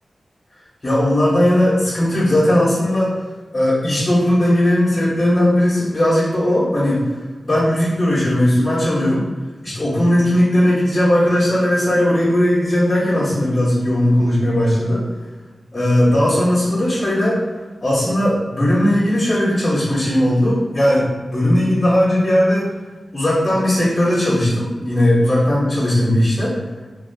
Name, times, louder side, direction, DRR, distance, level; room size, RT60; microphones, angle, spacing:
voice 1, 0.8-3.1 3.5-7.0 7.4-9.2 9.6-15.0 15.7-17.4 17.8-22.7 23.1-26.5, left 1 dB, 40° left, -8 dB, 1.1 m, -17 dB
2.7 x 2.7 x 2.7 m, 1.3 s
cardioid pair, 50°, 0 cm